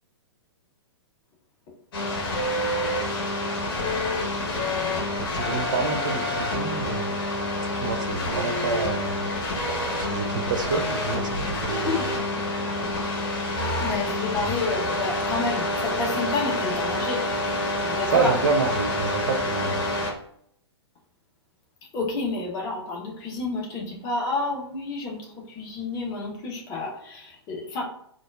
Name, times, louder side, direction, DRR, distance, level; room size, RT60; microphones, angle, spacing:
sound 1, 1.9-20.1, left 1 dB, 50° left, 1.0 m, -27 dB
voice 1, 5.2-7.1 7.6-9.3 9.9-12.0 18.1-19.8, right 4 dB, 45° right, 5 dB, 0.4 m, -28 dB
voice 2, 11.8-12.5 12.9-13.0 13.8-17.2 17.8-18.3 21.9-27.8, left 3 dB, 25° left, -1 dB, 0.9 m, -30 dB
3.9 x 2.4 x 2.4 m, 0.68 s
figure-of-eight pair, 110°, 14 cm